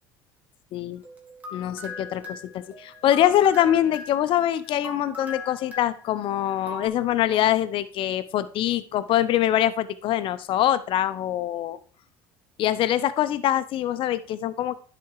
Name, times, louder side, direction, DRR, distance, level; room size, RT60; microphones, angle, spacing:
voice 1, 0.7-1.0 1.5-11.8 12.6-14.7, left 12 dB, 55° left, 13 dB, 0.7 m, -24 dB
sound 1, 1.0-6.9, left 3 dB, 15° right, 2.7 m, -40 dB
10.5 x 4.2 x 4.7 m, 0.43 s
supercardioid pair, 85°, 10 cm